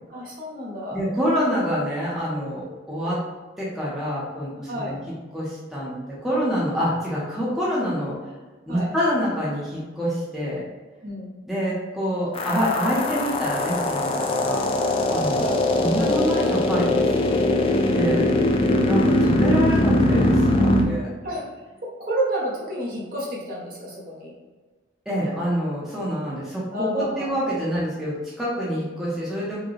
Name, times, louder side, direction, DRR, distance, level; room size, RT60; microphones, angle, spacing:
voice 1, 0.1-1.0 4.7-5.0 8.7-8.9 11.0-11.4 15.4-15.6 21.2-21.4 21.8-24.3 26.7-27.5, right 1 dB, 50° right, -5 dB, 1.0 m, -30 dB
voice 2, 0.9-3.2 3.6-5.0 5.3-8.2 8.7-10.6 11.5-14.7 15.1-15.5 15.8-17.4 17.9-18.3 18.8-21.1 25.1-29.6, equal, ahead, -8 dB, 0.7 m, -26 dB
sound 1, 12.3-20.8, left 1 dB, 30° left, 0.3 m, -21 dB
4.7 x 2.3 x 3.1 m, 1.3 s
head